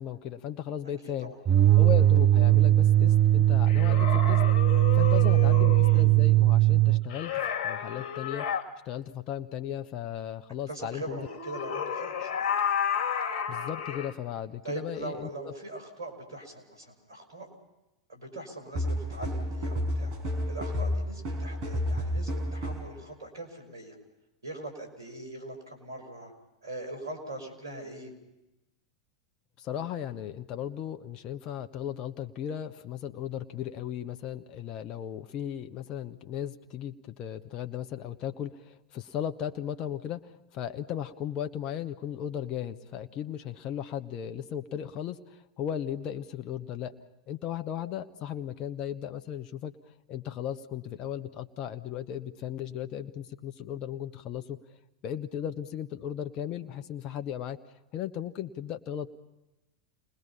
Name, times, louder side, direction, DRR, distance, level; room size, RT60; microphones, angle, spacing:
voice 1, 0.0-1.3 1.7-4.4 4.9-8.5 8.8-11.2 13.5-15.5 29.6-46.9 47.3-49.7 50.1-54.6 55.0-57.6 57.9-59.1, left 10 dB, 40° left, 7 dB, 1.3 m, -36 dB
voice 2, 1.0-1.4 1.7-1.8 10.7-12.5 14.6-17.5 18.1-20.1 20.5-24.0 24.4-26.3 26.6-28.1, right 2 dB, 85° right, 5 dB, 5.8 m, -41 dB
sound 1, 1.4-7.1, right 15 dB, 30° right, 0.9 m, -20 dB
sound 2, 3.7-6.1 7.1-8.6 11.2-14.1, left 8 dB, 55° left, 2.2 m, -32 dB
sound 3, 18.7-23.0, equal, 55° right, 5.7 m, -31 dB
29.5 x 20.5 x 5.7 m, 0.95 s
hypercardioid pair, 95°, 2 cm